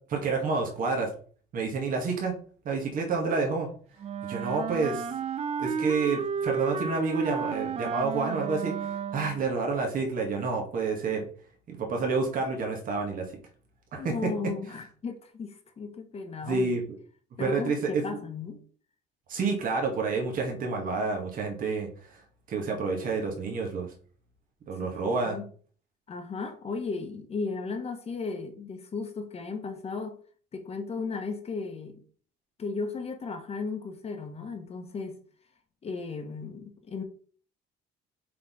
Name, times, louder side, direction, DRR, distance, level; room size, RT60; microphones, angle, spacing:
voice 1, 0.1-1.1 1.5-2.3 2.7-3.7 4.3-5.1 5.6-8.8 9.1-11.3 11.7-13.3 13.9-14.1 16.4-16.8 17.4-18.0 19.3-22.2 22.5-23.9 24.7-25.4, right 4 dB, 55° right, 2.0 m, -29 dB
Wind instrument woodwind instrument, 4.0-9.5, right 6 dB, 40° right, 0.7 m, -32 dB
voice 2, 13.9-16.7 17.4-18.6 24.8-25.5 26.1-30.2 30.5-32.0 32.6-35.2 35.8-37.0, left 4 dB, 35° left, 1.2 m, -35 dB
5.4 x 4.2 x 5.3 m
cardioid pair, 110°, 17 cm